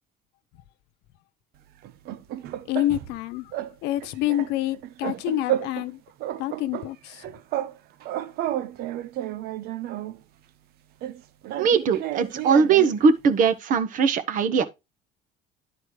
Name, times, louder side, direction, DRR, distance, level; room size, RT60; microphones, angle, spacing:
sound 1, 1.8-3.2 3.5-3.7 4.0-5.9 6.2-7.8 8.0-10.2 11.0-13.0, right 13 dB, 70° right, 0.9 m, -32 dB
voice 1, 2.7-3.6 3.8-6.0 6.4-7.2, left 14 dB, 85° left, 0.8 m, -27 dB
voice 2, 11.6-14.6, right 5 dB, 55° right, 1.4 m, -20 dB
11.0 x 4.3 x 4.8 m
cardioid pair, 140°, 17 cm